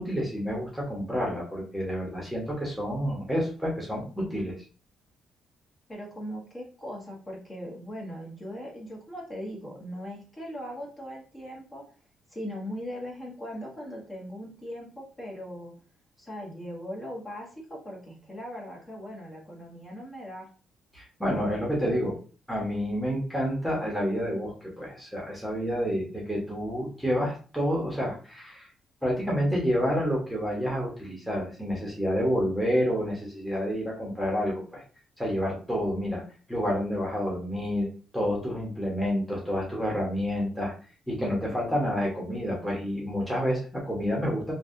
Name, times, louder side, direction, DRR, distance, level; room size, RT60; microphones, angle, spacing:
voice 1, 0.0-4.5 20.9-22.1 22.5-28.7 29.0-34.8 35.2-36.2 36.5-37.9 38.1-40.7 41.1-44.5, equal, ahead, -3 dB, 1.2 m, -29 dB
voice 2, 5.9-11.8 12.3-15.7 16.2-20.5, equal, 25° left, -3 dB, 1.2 m, -39 dB
3.1 x 2.4 x 2.6 m, 0.39 s
cardioid pair, 90°, 0 cm